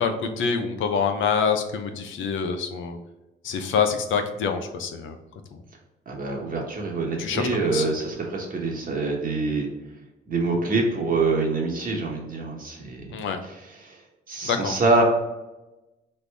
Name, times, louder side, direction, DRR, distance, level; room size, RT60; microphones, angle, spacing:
voice 1, 0.0-3.0 3.4-5.2 5.5-5.6 7.2-7.8 13.1-13.4 14.4-14.7, left 6 dB, 75° left, 6 dB, 0.7 m, -26 dB
voice 2, 6.1-9.7 10.3-13.2 13.4-13.6 13.8-14.0 14.3-15.0, right 3 dB, 45° right, 0 dB, 1.2 m, -25 dB
4.2 x 3.3 x 3.4 m, 1.0 s
cardioid pair, 90°, 20 cm